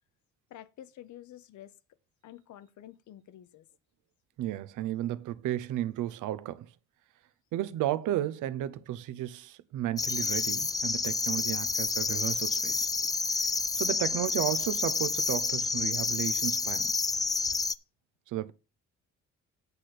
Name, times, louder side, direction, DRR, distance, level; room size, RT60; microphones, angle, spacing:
voice 1, 0.5-1.7 2.2-3.7, left 12 dB, 70° left, 0.8 m, -49 dB
voice 2, 4.4-6.7 7.5-12.9 13.8-16.9 18.3-18.5, right 13 dB, 85° right, 0.7 m, -33 dB
sound 1, 10.0-17.7, left 3 dB, 15° left, 0.3 m, -29 dB
8.3 x 4.3 x 6.5 m
cardioid pair, 90°, 30 cm